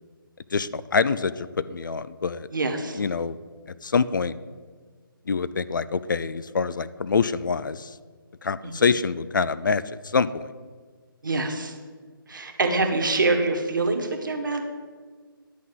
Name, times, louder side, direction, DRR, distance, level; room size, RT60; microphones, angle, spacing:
voice 1, 0.5-2.5 3.0-3.4 3.8-4.3 5.3-7.9 8.4-9.8 10.1-10.5, left 5 dB, 60° left, 15 dB, 0.4 m, -25 dB
voice 2, 2.5-3.0 8.6-8.9 11.2-11.8 12.3-14.6, right 3 dB, 60° right, 3 dB, 1.4 m, -25 dB
10.5 x 4.1 x 7.7 m, 1.5 s
figure-of-eight pair, 145°, 12 cm